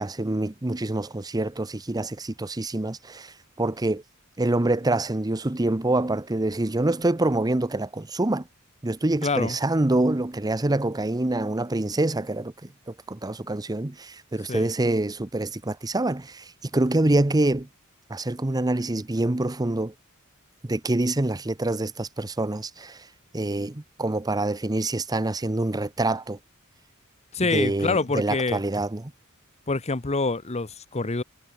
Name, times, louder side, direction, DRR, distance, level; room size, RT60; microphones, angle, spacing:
voice 1, 0.0-4.0 4.4-8.4 8.8-12.5 13.1-17.7 18.1-19.9 20.7-23.0 23.3-26.4 27.5-29.1, right 2 dB, 20° right, 0.7 m, -26 dB
voice 2, 9.2-9.6 14.5-14.7 27.3-28.6 29.7-31.2, left 3 dB, 30° left, 1.0 m, -26 dB
head